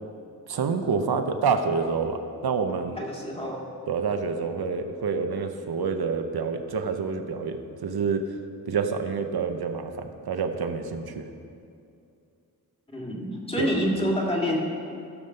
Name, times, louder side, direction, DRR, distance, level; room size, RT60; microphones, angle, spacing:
voice 1, 0.5-3.0 3.9-8.2 8.7-11.2 13.6-13.7, right 5 dB, 90° right, 6 dB, 0.9 m, -27 dB
voice 2, 3.0-3.6 12.9-14.6, equal, 15° left, -2 dB, 2.0 m, -27 dB
15.5 x 7.1 x 5.6 m, 2.5 s
wide cardioid pair, 105°, 37 cm